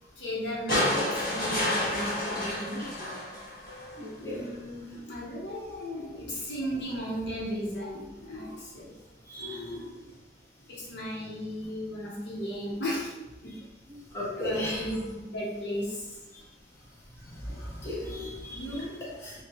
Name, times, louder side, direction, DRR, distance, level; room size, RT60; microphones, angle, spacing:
voice 1, 0.2-1.0 1.3-2.8 4.2-8.9 9.4-10.0 10.7-13.1 13.4-13.6 14.3-16.1 18.5-19.2, equal, 85° left, -5 dB, 1.0 m, -36 dB
sound 1, 0.7-4.0 5.3-5.4, left 1 dB, 50° left, 1.1 m, -29 dB
voice 2, 4.0-4.5 9.3-9.6 14.1-14.8 17.5-18.6 19.2-19.3, left 1 dB, 15° left, -7 dB, 0.7 m, -35 dB
3.0 x 2.3 x 3.1 m, 1.0 s
head